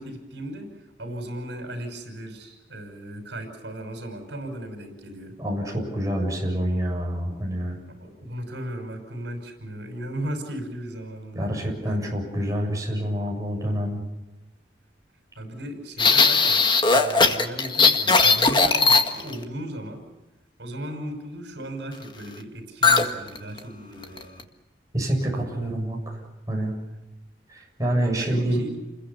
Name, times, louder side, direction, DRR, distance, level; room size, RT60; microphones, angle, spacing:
voice 1, 0.0-5.4 7.9-11.4 11.9-12.0 15.4-20.1 20.6-24.4 28.2-28.8, right 1 dB, 80° right, 5 dB, 5.9 m, -36 dB
voice 2, 5.4-7.8 11.3-14.0 24.9-26.2 26.5-26.8 27.5-28.6, right 1 dB, 20° right, -1 dB, 7.2 m, -27 dB
sound 1, 16.0-19.4 22.8-23.1 23.4-23.6 24.0-24.4, left 4 dB, 25° left, 1.8 m, -18 dB
29.5 x 22.0 x 7.1 m, 1.1 s
head